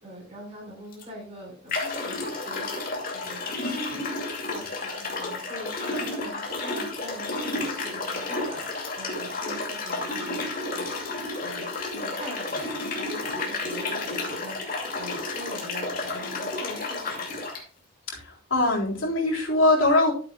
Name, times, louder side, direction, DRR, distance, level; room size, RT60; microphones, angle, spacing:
voice 1, 0.0-11.1 11.4-17.4, equal, 30° right, -1 dB, 5.4 m, -43 dB
sound 1, 0.9-1.0 1.7-17.6, left 2 dB, 45° left, 2.4 m, -31 dB
voice 2, 18.1-20.1, left 2 dB, 80° left, -3 dB, 3.8 m, -22 dB
12.0 x 8.1 x 2.3 m, 0.40 s
head